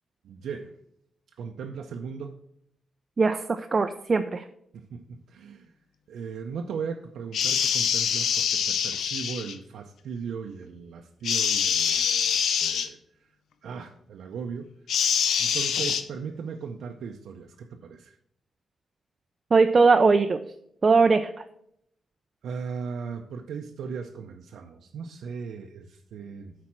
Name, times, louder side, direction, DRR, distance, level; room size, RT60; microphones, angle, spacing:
voice 1, 0.2-0.7 1.4-2.4 4.7-5.7 6.1-13.0 13.6-14.7 15.4-18.2 22.4-26.5, right 6 dB, 80° right, 3 dB, 0.6 m, -37 dB
voice 2, 3.2-4.4 19.5-20.4 20.8-21.3, right 4 dB, 30° right, 7 dB, 0.3 m, -20 dB
sound 1, 7.3-9.5 11.2-12.9 14.9-16.0, left 7 dB, 75° left, 0.7 m, -25 dB
8.8 x 4.2 x 5.9 m, 0.74 s
wide cardioid pair, 175°, 0 cm